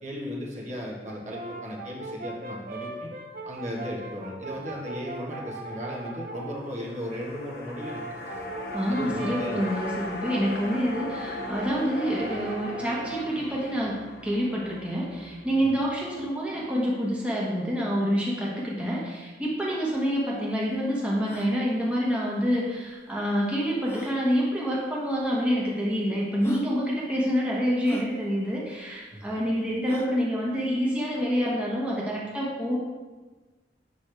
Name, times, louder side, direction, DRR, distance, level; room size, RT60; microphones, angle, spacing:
voice 1, 0.0-3.1 3.4-8.4 8.9-9.6 15.6-15.7 29.1-29.3, equal, 40° right, -3 dB, 1.3 m, -36 dB
Brass instrument, 1.0-6.6 7.6-13.4, right 2 dB, 55° right, 0.8 m, -39 dB
sound 1, 6.6-17.0 17.3-17.4, left 2 dB, 60° left, 1.1 m, -39 dB
voice 2, 8.7-32.8, equal, 5° right, -5 dB, 1.3 m, -27 dB
sound 2, 19.7-19.8 19.9-20.0 20.6-20.7 21.2-21.5 22.9-23.0 23.8-24.2 25.2-25.3 26.0-26.1 26.4-26.7 27.8-28.1 29.8-30.2, equal, 15° left, 0.6 m, -37 dB
7.9 x 6.0 x 3.4 m, 1.3 s
head